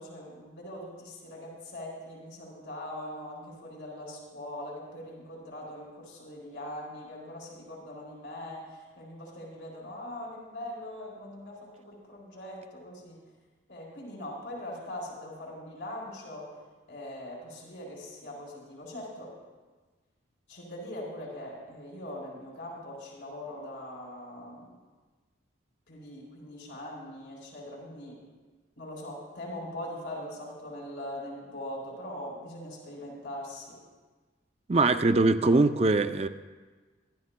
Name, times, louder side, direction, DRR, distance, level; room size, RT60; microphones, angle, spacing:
voice 1, 0.0-13.2 13.7-16.5 16.9-19.3 20.5-24.7 25.9-28.2 28.8-33.8, left 1 dB, 80° left, -4 dB, 4.1 m, -41 dB
voice 2, 34.7-36.3, right 3 dB, 30° right, 10 dB, 0.4 m, -22 dB
24.0 x 12.5 x 2.2 m, 1.3 s
head